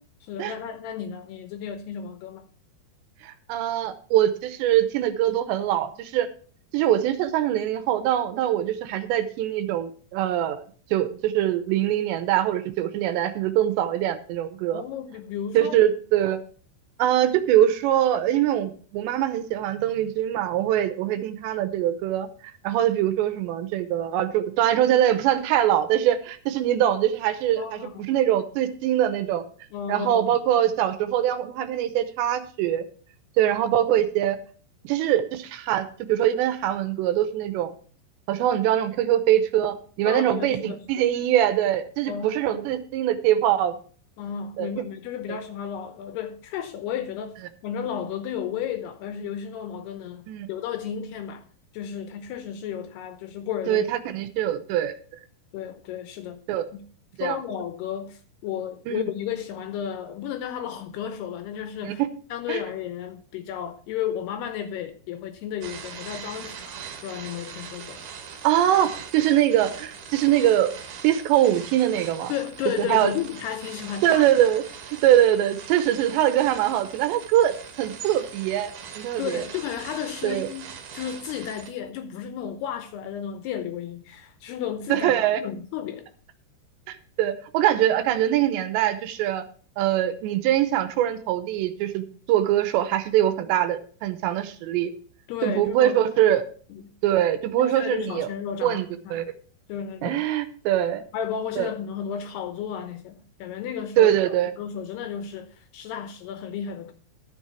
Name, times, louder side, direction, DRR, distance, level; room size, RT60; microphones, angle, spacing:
voice 1, 0.2-2.5 14.7-15.8 21.1-21.2 27.6-28.1 29.7-30.4 40.1-40.8 42.1-42.7 44.2-51.4 51.7-53.9 55.5-56.4 56.7-56.8 57.2-62.0 62.3-68.1 72.3-74.2 79.2-80.7 80.9-86.1 95.3-96.0 96.7-96.8 97.6-99.3 99.7-100.2 101.1-106.9, left 9 dB, 80° left, 2.4 m, -33 dB
voice 2, 3.2-6.3 6.7-10.6 10.9-14.8 15.5-16.4 17.0-22.3 22.6-29.4 29.9-32.8 33.4-34.4 34.8-37.7 38.3-43.8 44.6-44.7 45.3-45.4 50.3-50.5 53.7-54.9 56.5-56.6 57.2-57.4 58.9-59.0 61.8-61.9 62.5-62.6 68.4-70.7 71.0-72.3 72.8-73.1 74.0-74.6 75.0-79.4 80.2-80.5 84.9-85.4 86.9-89.5 89.8-94.9 95.4-96.4 97.0-98.3 98.6-99.3 100.0-101.0 101.6-101.7 104.0-104.5, right 12 dB, 80° right, 2.9 m, -23 dB
sound 1, 65.6-81.7, right 7 dB, 65° right, 2.2 m, -41 dB
12.0 x 7.4 x 4.5 m
omnidirectional pair, 5.3 m